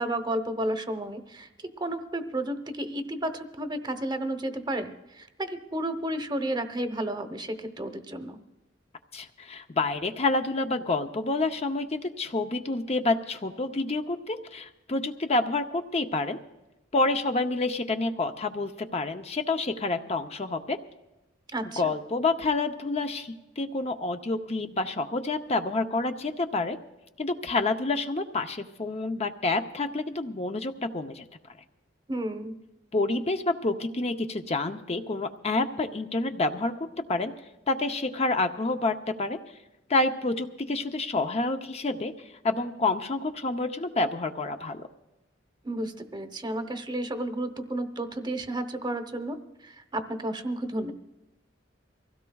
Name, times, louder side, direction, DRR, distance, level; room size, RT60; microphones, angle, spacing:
voice 1, 0.0-1.5 1.8-8.4 21.5-21.9 32.1-32.6 45.6-50.9, right 1 dB, 25° right, 9 dB, 1.0 m, -32 dB
voice 2, 9.1-16.4 16.9-20.8 21.8-26.8 27.2-31.2 32.9-36.7 37.1-37.3 37.7-39.4 39.9-42.1 42.4-44.8, left 3 dB, 35° left, 6 dB, 0.7 m, -28 dB
24.5 x 16.5 x 2.3 m, 0.98 s
head